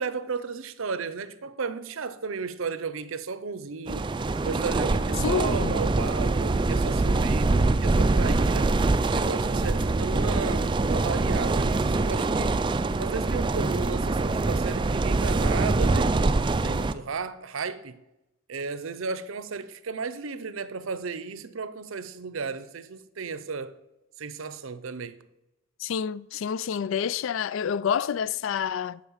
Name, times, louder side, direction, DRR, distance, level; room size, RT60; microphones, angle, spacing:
voice 1, 0.0-4.1 4.4-8.8 9.1-12.6 13.0-18.0 18.5-23.8 24.2-25.2, right 5 dB, 75° right, 0.6 m, -34 dB
sound 1, 3.9-16.9, right 3 dB, 25° right, 0.3 m, -24 dB
voice 2, 5.2-5.8 25.8-29.0, left 7 dB, 70° left, 0.3 m, -28 dB
8.4 x 6.4 x 7.2 m
head